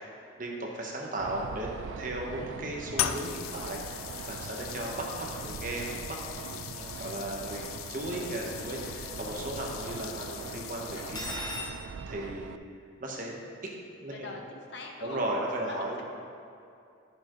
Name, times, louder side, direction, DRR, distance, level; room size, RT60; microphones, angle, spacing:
voice 1, 0.4-1.7 2.0-6.2 6.6-11.4 12.1-12.6 13.0-13.7 14.0-14.3 15.0-16.0, right 1 dB, 40° right, -1 dB, 1.1 m, -36 dB
sound 1, 1.2-12.6, right 6 dB, 70° right, 0.3 m, -42 dB
sound 2, 2.9-11.5, left 11 dB, 90° left, 0.4 m, -39 dB
voice 2, 7.2-7.5 14.1-15.2 15.5-16.0, left 2 dB, 55° left, 1 dB, 0.9 m, -43 dB
Cutlery silverware, 11.0-11.7, left 2 dB, 20° left, 0.9 m, -36 dB
11.5 x 6.9 x 3.1 m, 2.6 s
head